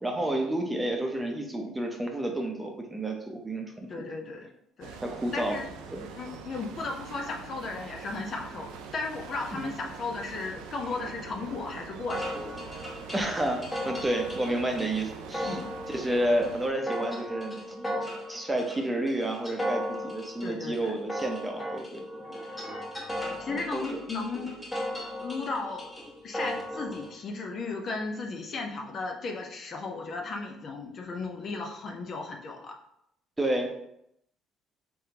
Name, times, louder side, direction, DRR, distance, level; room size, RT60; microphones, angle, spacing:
voice 1, 0.0-3.9 5.0-5.6 5.9-6.1 9.5-9.7 13.1-15.6 15.9-18.0 18.3-22.2 23.5-24.0 33.4-33.7, right 1 dB, 15° right, 2 dB, 0.8 m, -30 dB
voice 2, 3.9-4.5 4.8-5.0 5.3-5.7 6.2-12.3 15.4-15.7 20.4-20.9 22.2-22.5 23.2-24.5 24.9-25.9 26.2-32.7, left 3 dB, 50° left, 2 dB, 0.7 m, -35 dB
sound 1, 4.8-16.7, right 6 dB, 85° right, 0.4 m, -44 dB
sound 2, 12.1-27.1, equal, 20° left, 1.4 m, -37 dB
3.5 x 3.4 x 2.9 m, 0.77 s
supercardioid pair, 80°, 0 cm